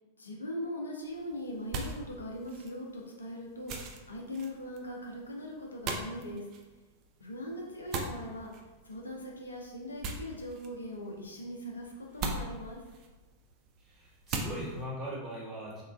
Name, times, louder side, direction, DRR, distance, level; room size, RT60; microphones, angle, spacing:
voice 1, 0.2-6.5 7.2-8.5 8.8-12.8, left 1 dB, 75° left, -1 dB, 0.4 m, -40 dB
sound 1, 1.0-14.8, right 3 dB, 40° right, 0.3 m, -42 dB
voice 2, 13.8-15.8, equal, 25° right, -7 dB, 1.1 m, -40 dB
2.9 x 2.2 x 2.2 m, 1.2 s
figure-of-eight pair, 90°, 0 cm